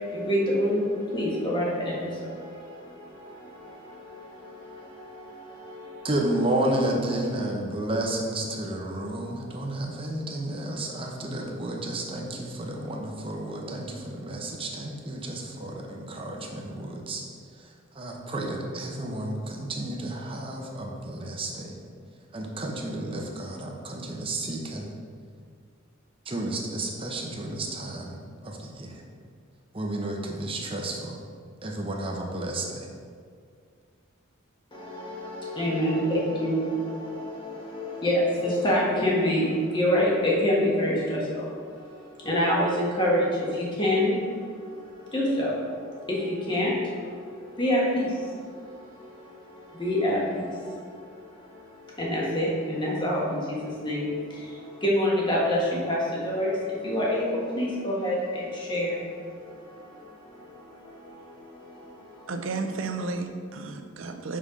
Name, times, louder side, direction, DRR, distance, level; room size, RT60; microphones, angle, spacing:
voice 1, 0.0-6.1 34.7-62.3, left 1 dB, 20° left, -5 dB, 1.5 m, -28 dB
voice 2, 6.0-17.2 17.9-21.7 22.3-24.9 26.3-29.0 29.7-31.2 31.6-32.9, right 1 dB, 25° right, 0 dB, 0.8 m, -31 dB
voice 3, 62.3-64.4, right 3 dB, 65° right, 6 dB, 0.6 m, -32 dB
5.5 x 5.5 x 4.9 m, 2.1 s
head